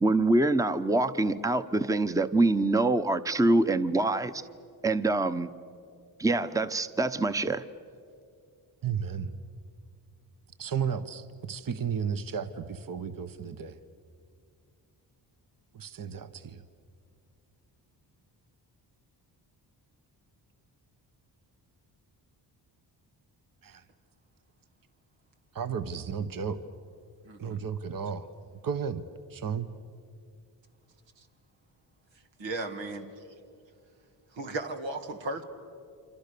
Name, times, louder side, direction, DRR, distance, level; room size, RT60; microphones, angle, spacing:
voice 1, 0.0-4.4 4.8-5.5 6.2-7.6, right 2 dB, 10° right, 11 dB, 0.9 m, -25 dB
voice 2, 8.8-9.3 10.6-13.8 15.7-16.6 23.6-23.8 25.5-26.6 27.4-28.3 28.6-29.0 29.3-29.7, right 7 dB, 50° right, 10 dB, 1.2 m, -33 dB
voice 3, 27.2-27.6 32.4-33.1 34.3-35.4, right 2 dB, 85° right, 5 dB, 2.4 m, -35 dB
28.0 x 26.5 x 6.9 m, 2.4 s
cardioid pair, 60°, 44 cm